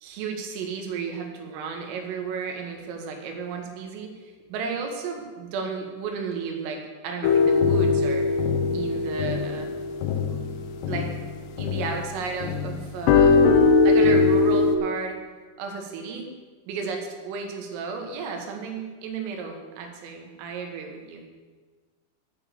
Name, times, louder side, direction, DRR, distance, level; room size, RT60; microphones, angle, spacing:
voice 1, 0.0-8.3 8.7-9.7 10.2-10.4 10.8-11.1 11.6-13.4 13.8-15.2 15.6-16.3 16.7-21.2, right 5 dB, 80° right, 3 dB, 3.9 m, -33 dB
sound 1, 7.2-12.1 12.4-14.8, left 4 dB, 85° left, 2.4 m, -21 dB
11.5 x 5.1 x 7.5 m, 1.4 s
omnidirectional pair, 5.9 m